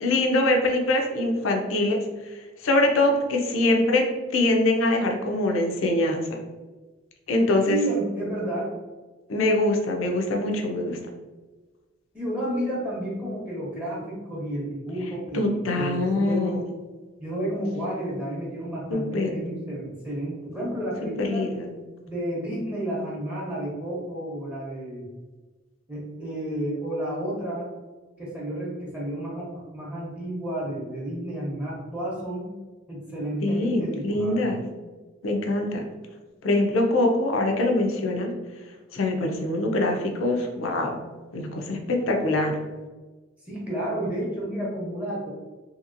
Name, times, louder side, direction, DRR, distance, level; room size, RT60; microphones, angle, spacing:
voice 1, 0.0-2.0 2.6-4.0 4.3-6.2 7.3-7.8 9.3-11.0 15.3-16.6 18.9-19.3 21.2-21.7 33.4-34.6 35.2-35.8 36.4-38.3 38.9-41.0 41.3-42.5, left 2 dB, 90° left, 2 dB, 0.5 m, -23 dB
voice 2, 7.7-8.7 12.1-16.7 17.2-21.5 22.1-25.1 25.9-27.7 28.2-32.5 32.9-34.5 43.5-45.3, right 1 dB, 5° right, -6 dB, 0.7 m, -31 dB
2.8 x 2.8 x 2.5 m, 1.3 s
head